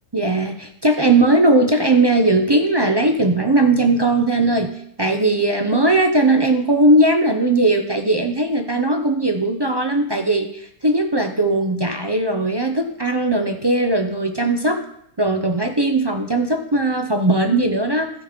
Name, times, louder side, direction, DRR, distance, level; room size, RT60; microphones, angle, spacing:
voice 1, 0.1-4.7 5.0-14.8 15.2-18.1, right 2 dB, 35° right, 4 dB, 0.4 m, -18 dB
13.5 x 5.2 x 5.1 m, 0.73 s
omnidirectional pair, 1.6 m